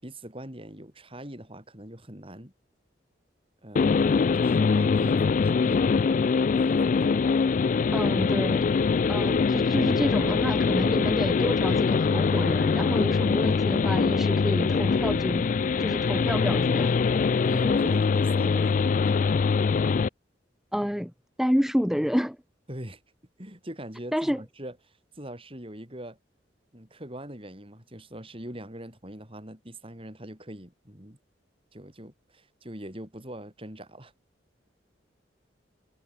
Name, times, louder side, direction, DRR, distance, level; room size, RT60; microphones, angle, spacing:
voice 1, 0.0-2.5 3.6-5.9 6.5-7.2 17.4-19.5 22.7-23.0 23.4-26.2 26.7-31.2 31.7-34.1, right 1 dB, 30° right, 6.5 m, -42 dB
sound 1, 3.8-20.1, left 5 dB, 45° left, 0.3 m, -23 dB
voice 2, 7.9-8.7 9.1-15.5 15.8-17.0 20.7-21.1 21.4-22.4 24.1-24.4, equal, ahead, 0.7 m, -29 dB
head